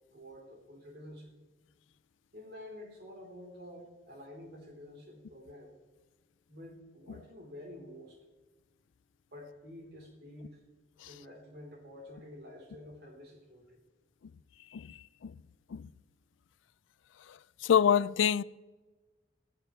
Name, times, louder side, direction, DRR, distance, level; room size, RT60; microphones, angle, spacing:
voice 1, 0.1-1.4 2.3-5.8 6.5-8.2 9.3-10.6 11.1-13.8, left 1 dB, 55° right, 3.6 m, -49 dB
voice 2, 14.7-15.4 15.7-15.9 17.3-18.4, left 8 dB, 85° left, 0.4 m, -28 dB
16.5 x 15.0 x 3.2 m
head